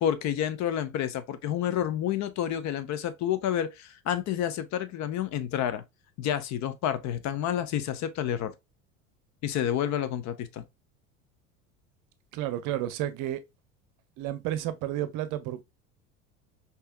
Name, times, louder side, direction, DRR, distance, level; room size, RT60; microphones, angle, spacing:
voice 1, 0.0-5.8 6.2-8.5 9.4-10.6, left 10 dB, 45° left, 0.7 m, -29 dB
voice 2, 12.3-13.4 14.2-15.6, right 12 dB, 50° right, 0.7 m, -31 dB
5.5 x 2.8 x 2.2 m
hypercardioid pair, 75°, 40 cm